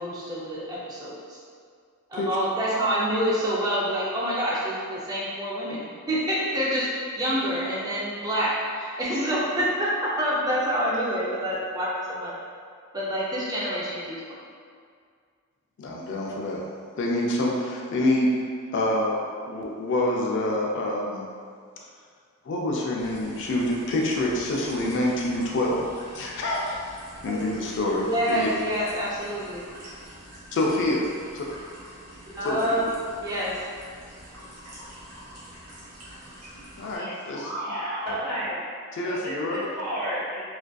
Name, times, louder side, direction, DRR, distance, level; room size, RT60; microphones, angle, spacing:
voice 1, 0.0-1.4 2.1-12.3 12.9-14.4 27.3-27.4 28.0-29.6 32.3-32.8 33.2-33.6, equal, 15° right, -7 dB, 0.4 m, -27 dB
voice 2, 15.8-16.6 17.0-18.3 18.7-19.2 19.5-21.2 22.4-25.8 26.1-26.8 27.2-28.5 30.5-31.0 32.4-32.9 36.8-37.5 38.9-39.7, left 1 dB, 55° left, -1 dB, 0.4 m, -26 dB
sound 1, 23.0-37.0, equal, 85° right, 0.8 m, -46 dB
voice 3, 36.9-38.6 39.0-40.6, equal, 45° right, -10 dB, 1.0 m, -32 dB
2.4 x 2.4 x 2.2 m, 2.1 s
head